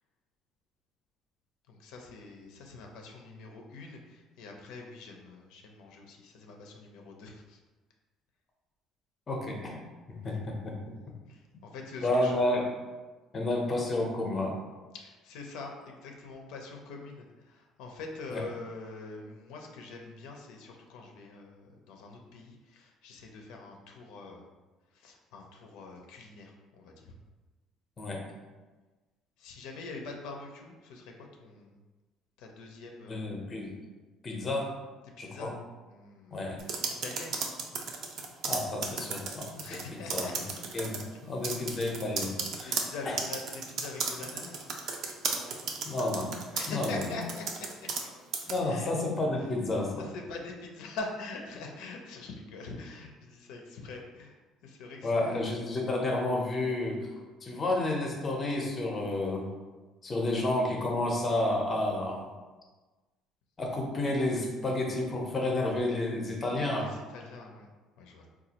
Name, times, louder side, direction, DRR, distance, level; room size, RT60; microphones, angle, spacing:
voice 1, 1.7-7.6 11.3-12.4 14.9-24.5 24.9-27.1 29.4-31.8 32.4-33.3 35.2-35.5 35.9-36.5 37.0-37.4 39.6-40.7 42.8-44.7 46.5-47.9 48.6-48.9 49.4-49.5 50.0-54.4 54.6-55.4 66.7-67.7 68.0-68.3, left 3 dB, 85° left, 1 dB, 0.5 m, -44 dB
voice 2, 9.3-9.8 10.1-10.8 12.0-12.7 13.3-14.5 18.3-18.4 28.0-28.2 33.0-33.7 34.2-34.8 35.2-35.5 36.3-36.6 38.5-39.6 39.9-40.3 40.7-43.2 45.9-46.3 46.7-47.1 48.5-50.0 55.0-59.5 60.0-62.3 63.6-66.9, left 2 dB, 25° left, 0 dB, 0.6 m, -31 dB
sound 1, 36.6-39.8 40.1-41.0 41.4-48.1 48.3-48.6, right 5 dB, 55° right, 0.4 m, -34 dB
4.1 x 2.3 x 2.8 m, 1.2 s
cardioid pair, 150°, 0 cm